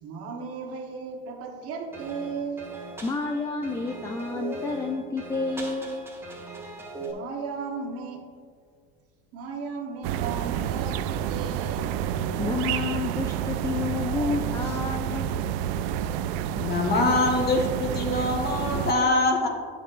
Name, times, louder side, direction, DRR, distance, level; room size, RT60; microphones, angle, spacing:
voice 1, 0.0-2.7 7.0-8.2 9.3-11.9, right 5 dB, 50° right, 3 dB, 1.2 m, -35 dB
sound 1, 1.9-7.1, right 2 dB, 10° right, 1.4 m, -39 dB
voice 2, 3.0-6.0 12.4-15.3, left 4 dB, 10° left, 3 dB, 0.4 m, -30 dB
sound 2, 10.0-18.9, right 10 dB, 65° right, 0.4 m, -29 dB
voice 3, 16.6-19.5, left 2 dB, 35° left, 2 dB, 1.3 m, -24 dB
9.7 x 6.7 x 2.5 m, 2.1 s
supercardioid pair, 105°, 30 cm